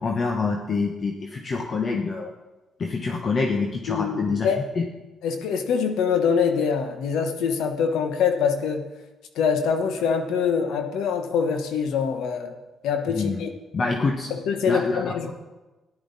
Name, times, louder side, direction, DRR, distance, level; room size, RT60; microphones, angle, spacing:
voice 1, 0.0-2.3 2.8-4.5 4.7-4.9 13.1-13.4 13.7-14.3 14.7-15.3, left 4 dB, 45° left, 2 dB, 1.1 m, -26 dB
voice 2, 3.9-4.6 5.2-8.8 9.4-12.5 12.8-13.5 14.5-15.3, left 6 dB, 85° left, 6 dB, 1.2 m, -24 dB
14.0 x 10.5 x 4.1 m, 1.1 s
cardioid pair, 90°, 0 cm